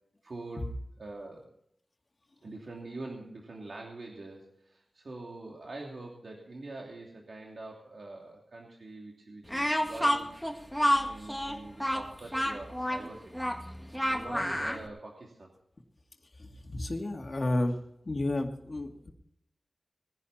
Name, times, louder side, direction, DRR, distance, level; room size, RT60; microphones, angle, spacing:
voice 1, 0.2-0.6 1.0-1.5 2.4-13.2 13.8-15.5, right 2 dB, 60° right, -1 dB, 3.0 m, -44 dB
Speech, 9.5-14.8, equal, ahead, 1.9 m, -29 dB
voice 2, 16.3-17.8 18.0-19.1, left 1 dB, 40° left, 1 dB, 2.3 m, -32 dB
20.5 x 11.0 x 4.3 m, 0.74 s
wide cardioid pair, 100°, 0 cm